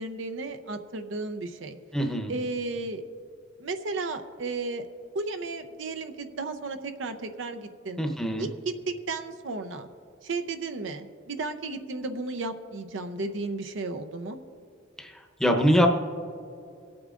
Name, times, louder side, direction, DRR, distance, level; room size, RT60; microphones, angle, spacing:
voice 1, 0.0-1.8 2.3-3.0 3.6-4.8 5.1-8.0 8.4-9.9 10.2-14.4, right 3 dB, 70° right, 8 dB, 0.6 m, -34 dB
voice 2, 1.9-2.3 8.0-8.5 15.0-15.1 15.4-15.9, equal, 5° left, 3 dB, 0.8 m, -23 dB
23.5 x 8.6 x 2.5 m, 2.4 s
head